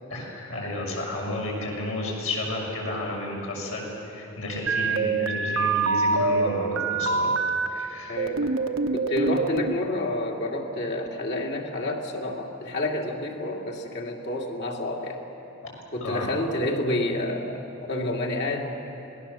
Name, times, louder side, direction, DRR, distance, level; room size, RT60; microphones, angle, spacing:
voice 1, 0.1-7.3 7.7-8.2 15.6-15.7 16.0-16.3, left 1 dB, 75° left, -2 dB, 6.4 m, -32 dB
sound 1, 4.7-7.7 8.2-9.8, right 4 dB, 70° right, 1.1 m, -25 dB
voice 2, 8.1-8.5 8.9-15.2 15.9-18.8, left 1 dB, 50° left, 0 dB, 2.5 m, -29 dB
26.5 x 19.5 x 7.1 m, 2.9 s
head